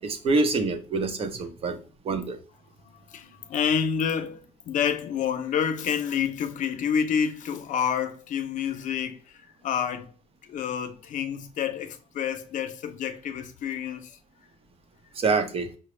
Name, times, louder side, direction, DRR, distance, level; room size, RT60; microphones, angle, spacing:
voice 1, 0.0-1.8 2.0-2.4 15.1-15.7, right 3 dB, 45° right, 0.7 m, -26 dB
voice 2, 2.9-10.1 10.4-14.2, left 7 dB, 70° left, 0.6 m, -29 dB
5.8 x 2.1 x 3.1 m
cardioid pair, 165°, 14 cm